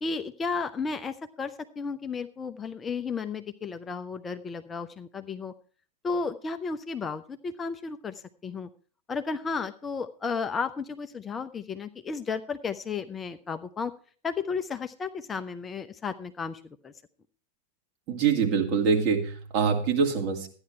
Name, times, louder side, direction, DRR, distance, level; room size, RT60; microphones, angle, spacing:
voice 1, 0.0-5.5 6.0-8.7 9.1-13.9 14.2-16.9, left 5 dB, 20° left, 9 dB, 0.7 m, -33 dB
voice 2, 18.1-20.5, right 6 dB, 40° right, 2 dB, 2.4 m, -24 dB
13.0 x 9.8 x 4.4 m, 0.42 s
figure-of-eight pair, 90°, 0 cm